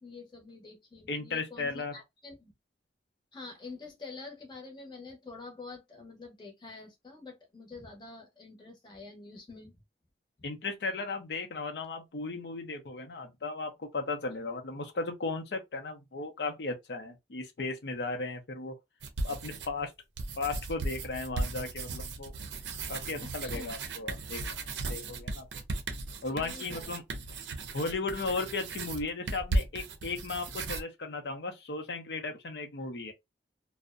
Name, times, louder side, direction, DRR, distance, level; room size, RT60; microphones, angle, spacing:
voice 1, 0.0-2.5 3.3-9.8 14.3-14.4 23.2-23.7 25.3-25.4 26.3-26.9, left 3 dB, 25° left, 0.7 m, -47 dB
voice 2, 1.1-1.9 10.4-18.7 19.2-19.9 20.4-22.3 22.9-24.4 24.9-25.5 26.2-27.0 27.7-33.1, left 3 dB, 70° left, 0.6 m, -36 dB
sound 1, 19.0-19.8 20.2-30.8, right 2 dB, 85° right, 0.5 m, -36 dB
2.5 x 2.0 x 2.4 m
head